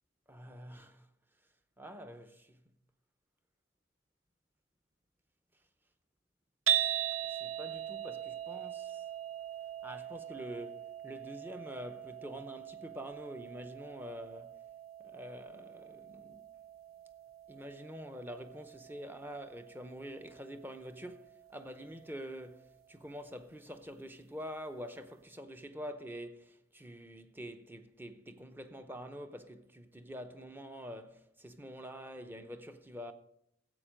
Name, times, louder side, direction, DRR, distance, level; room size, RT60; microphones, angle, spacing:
voice 1, 0.3-1.1 1.8-2.6 7.2-9.1 9.8-14.6 15.0-16.5 17.5-33.1, equal, 10° right, 0.7 m, -46 dB
sound 1, 6.7-22.9, right 10 dB, 85° right, 0.6 m, -41 dB
14.5 x 8.2 x 5.1 m
head